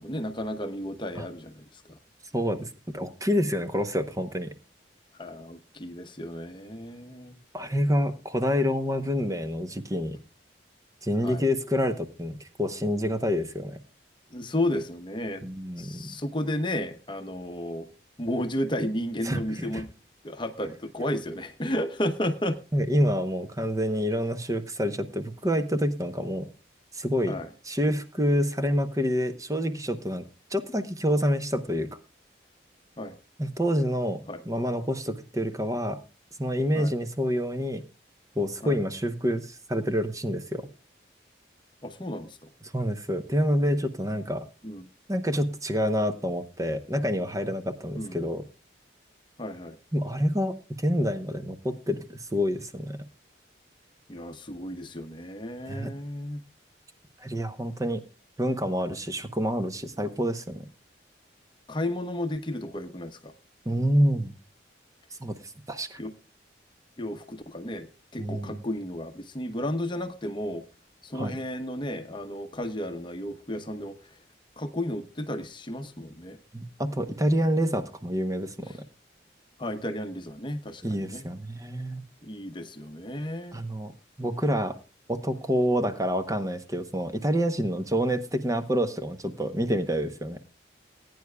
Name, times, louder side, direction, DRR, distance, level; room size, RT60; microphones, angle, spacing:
voice 1, 0.0-2.0 5.2-7.4 11.2-11.5 14.3-15.5 15.8-17.9 18.2-19.9 20.2-22.6 27.3-27.5 33.0-33.2 34.3-34.4 36.7-36.9 38.6-38.8 41.8-42.5 44.6-44.8 47.9-48.2 49.4-49.8 54.1-56.4 61.7-63.3 66.0-66.1 67.0-67.9 68.1-70.6 71.0-74.0 74.6-76.4 79.6-81.3 82.2-83.6, left 1 dB, 25° left, 0.9 m, -33 dB
voice 2, 2.3-4.5 7.5-10.2 11.0-13.8 15.4-16.2 19.2-19.8 22.7-26.5 26.9-27.4 27.6-30.2 30.5-31.9 33.4-36.0 36.4-37.8 38.4-40.7 42.7-44.5 45.1-48.4 49.9-53.0 55.7-55.9 57.2-58.0 58.4-60.7 63.7-64.3 65.2-66.0 68.2-68.6 71.1-71.4 76.5-78.8 80.8-82.0 83.5-83.9 84.2-84.8 85.1-90.4, equal, 15° right, 0.8 m, -27 dB
20.0 x 9.5 x 2.3 m
head